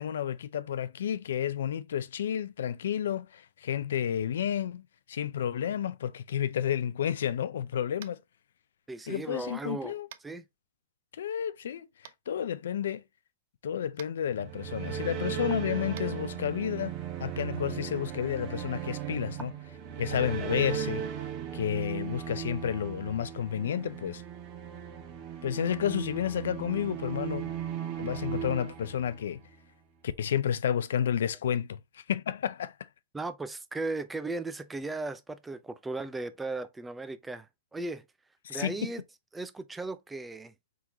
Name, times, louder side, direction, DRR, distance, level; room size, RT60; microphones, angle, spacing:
voice 1, 0.0-8.2 9.1-10.1 11.1-11.9 12.3-13.0 13.6-16.9 17.2-19.5 20.0-21.0 21.5-24.2 25.4-27.5 28.0-29.4 30.0-32.9 38.4-38.9, left 9 dB, 75° left, 0.5 m, -31 dB
Tap, 8.0-8.2 10.1-10.3 12.0-12.1 13.9-14.1 15.9-16.1, right 11 dB, 65° right, 0.6 m, -47 dB
voice 2, 8.9-9.9 10.2-10.4 20.4-20.6 33.1-38.0 38.5-39.0 39.3-40.5, right 2 dB, 10° right, 0.5 m, -36 dB
sound 1, 14.3-29.5, right 9 dB, 40° right, 1.3 m, -37 dB
4.6 x 3.7 x 2.8 m
hypercardioid pair, 130°, 0 cm